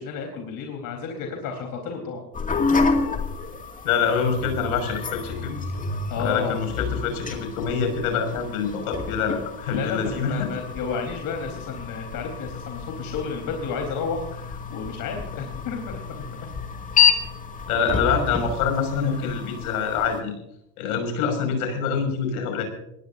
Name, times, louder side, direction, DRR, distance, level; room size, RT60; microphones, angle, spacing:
voice 1, 0.0-2.2 5.9-6.6 9.7-16.3 19.0-19.1, left 5 dB, 45° left, 3 dB, 4.0 m, -32 dB
sound 1, 2.3-20.2, left 5 dB, 15° left, 2.2 m, -29 dB
voice 2, 3.8-5.6 6.2-10.5 17.7-20.3 20.8-22.6, left 6 dB, 70° left, 5 dB, 6.0 m, -25 dB
22.5 x 20.0 x 2.7 m, 0.81 s
hypercardioid pair, 95°, 45 cm